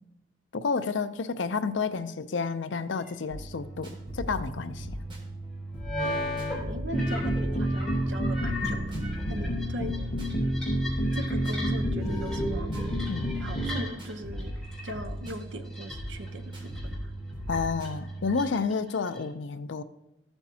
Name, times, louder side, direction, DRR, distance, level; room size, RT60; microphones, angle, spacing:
voice 1, 0.5-5.0 13.1-13.3 17.5-19.8, left 4 dB, 85° left, 0.5 m, -30 dB
sound 1, 3.0-3.1 5.8-6.6 6.8-14.1 14.4-14.9 15.2-16.3 16.7-17.0 17.5-19.2, left 1 dB, 5° left, 3.3 m, -37 dB
sound 2, 3.3-18.5, equal, 25° right, 1.7 m, -39 dB
voice 2, 6.6-8.9 9.3-9.9 11.1-12.9 13.4-14.5 14.8-17.1, right 1 dB, 85° right, 0.8 m, -40 dB
sound 3, 6.9-13.8, equal, 40° left, 1.3 m, -29 dB
14.0 x 8.9 x 2.8 m
head